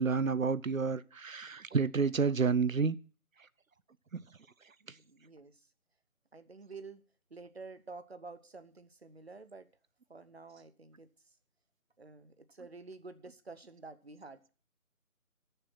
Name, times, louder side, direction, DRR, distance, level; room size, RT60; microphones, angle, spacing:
voice 1, 0.0-3.0 4.1-4.2, right 5 dB, 70° right, 0.7 m, -29 dB
voice 2, 4.9-5.7 6.3-7.0 7.3-9.7 10.1-11.3 12.0-14.5, right 3 dB, 45° right, 1.0 m, -50 dB
10.5 x 6.9 x 7.3 m
figure-of-eight pair, 165°, 43 cm